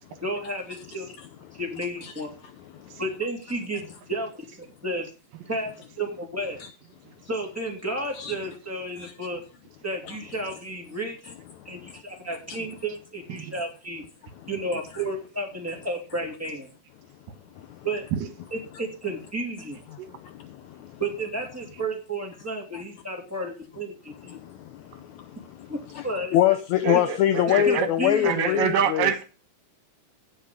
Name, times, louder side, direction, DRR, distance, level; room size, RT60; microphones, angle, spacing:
voice 1, 0.2-1.1 1.5-2.3 3.0-3.8 4.1-5.1 5.5-5.7 6.0-6.6 7.3-9.4 9.8-11.2 11.6-14.0 14.5-16.7 17.8-18.0 18.5-19.8 21.0-23.9 24.2-24.4 25.7-26.4 26.9-27.0 27.6-28.6, right 1 dB, 5° right, 0 dB, 2.7 m, -32 dB
voice 2, 1.8-2.1 6.6-6.7 8.1-8.4 9.0-9.1 10.1-10.2 11.3-11.4 11.8-11.9 12.5-12.6 14.9-15.0 19.9-21.0 22.7-22.8 24.3-24.8 25.1-26.1 26.3-29.1, left 11 dB, 75° left, 9 dB, 1.8 m, -26 dB
voice 3, 26.8-29.2, right 7 dB, 80° right, 8 dB, 3.1 m, -26 dB
16.0 x 5.5 x 4.8 m, 0.34 s
omnidirectional pair, 3.9 m